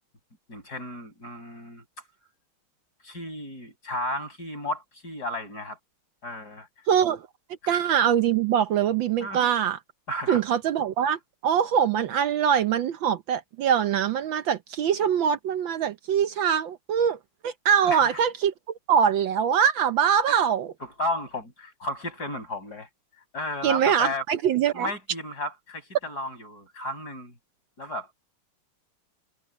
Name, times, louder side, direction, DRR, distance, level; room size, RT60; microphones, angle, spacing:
voice 1, 0.5-1.8 3.0-5.8 6.2-6.7 7.6-7.8 9.2-9.5 10.1-10.4 17.8-18.2 20.3-20.4 20.8-22.9 23.3-24.2 24.7-27.3 27.8-28.1, left 1 dB, 45° left, 6.6 m, -33 dB
voice 2, 6.9-7.2 7.7-9.8 10.3-17.2 17.4-18.5 18.9-20.7 23.6-24.9, right 8 dB, 70° right, 1.5 m, -23 dB
omnidirectional pair, 2.4 m